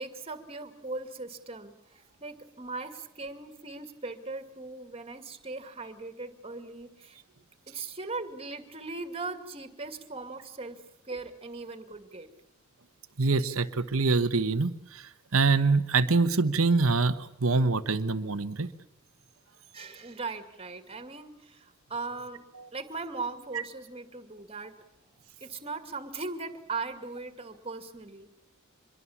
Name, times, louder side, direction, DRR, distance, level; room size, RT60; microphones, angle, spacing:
voice 1, 0.0-7.2 7.7-12.3 19.7-22.4 22.7-24.7 25.4-28.3, right 3 dB, 30° right, 8 dB, 2.3 m, -39 dB
voice 2, 13.2-18.7 22.6-22.7, right 3 dB, 75° right, 10 dB, 1.1 m, -25 dB
26.0 x 22.5 x 7.2 m, 0.88 s
head